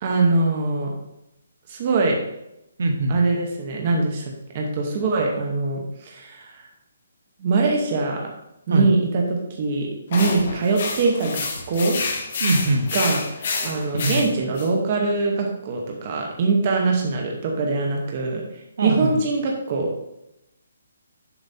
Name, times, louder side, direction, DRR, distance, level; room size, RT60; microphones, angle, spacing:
voice 1, 0.0-0.9 1.7-2.2 3.1-4.2 4.5-6.7 7.4-8.3 8.7-12.0 12.9-18.4 18.8-19.9, right 3 dB, 25° right, 0 dB, 0.9 m, -23 dB
voice 2, 2.8-3.1 8.7-8.9 12.4-12.8 14.0-14.2 18.8-19.2, right 2 dB, 50° right, 4 dB, 0.9 m, -21 dB
sound 1, 10.1-14.7, left 4 dB, 35° left, 1.0 m, -28 dB
6.9 x 4.9 x 4.2 m, 0.85 s
hypercardioid pair, 180°, 0 cm